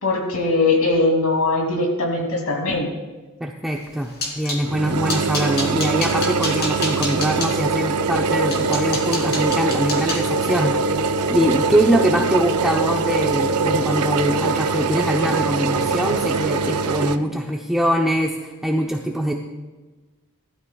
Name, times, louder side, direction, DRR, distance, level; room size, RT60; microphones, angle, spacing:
voice 1, 0.0-2.9, left 2 dB, 75° left, 0 dB, 2.7 m, -20 dB
voice 2, 3.4-19.3, right 1 dB, ahead, -1 dB, 0.7 m, -23 dB
sound 1, 3.8-4.6 5.1-7.5 8.1-8.2 8.5-12.7 13.1-13.5 13.7-14.0 14.4-14.5, left 2 dB, 45° left, 3.1 m, -30 dB
sound 2, 4.6-17.2, right 4 dB, 85° right, 0.6 m, -22 dB
20.0 x 12.5 x 2.4 m, 1.2 s
head